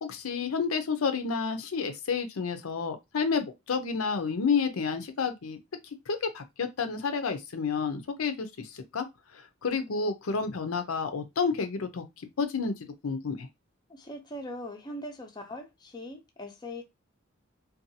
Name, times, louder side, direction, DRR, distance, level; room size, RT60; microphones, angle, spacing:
voice 1, 0.0-5.6 6.1-9.1 9.3-12.0 12.4-12.7 13.0-13.5, left 5 dB, 80° left, 0.6 m, -30 dB
voice 2, 13.9-16.8, left 1 dB, 20° left, 0.5 m, -41 dB
2.6 x 2.3 x 2.6 m
head